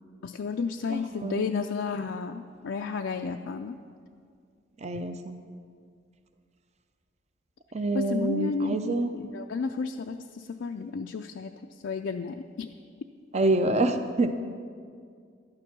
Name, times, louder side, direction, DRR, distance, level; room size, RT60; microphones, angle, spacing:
voice 1, 0.2-3.8 7.9-12.7, left 4 dB, 70° left, 4 dB, 0.4 m, -32 dB
voice 2, 0.9-1.4 4.8-5.4 7.7-9.1 13.3-14.3, right 2 dB, 35° right, 8 dB, 0.6 m, -27 dB
11.5 x 9.8 x 6.0 m, 2.2 s
head